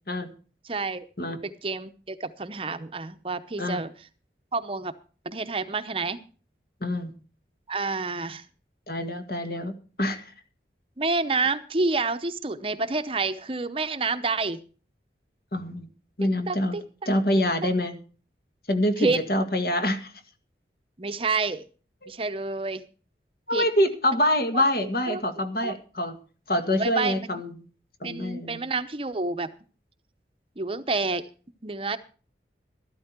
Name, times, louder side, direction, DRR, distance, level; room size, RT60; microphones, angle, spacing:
voice 1, 0.6-3.9 4.5-4.9 5.2-6.2 7.7-8.4 11.0-14.6 16.5-16.8 17.3-17.7 19.0-19.3 21.0-21.6 22.1-22.8 23.5-23.7 24.8-25.2 25.6-25.8 26.8-27.4 28.0-29.5 30.6-31.3 31.6-32.0, right 3 dB, 30° right, 10 dB, 0.7 m, -29 dB
voice 2, 6.8-7.1 8.9-10.2 15.5-15.9 16.2-16.8 17.1-18.0 18.7-20.1 22.0-22.1 23.5-26.2 26.5-27.5 28.0-28.7, left 1 dB, 55° left, 8 dB, 1.9 m, -26 dB
13.0 x 12.5 x 4.4 m, 0.38 s
head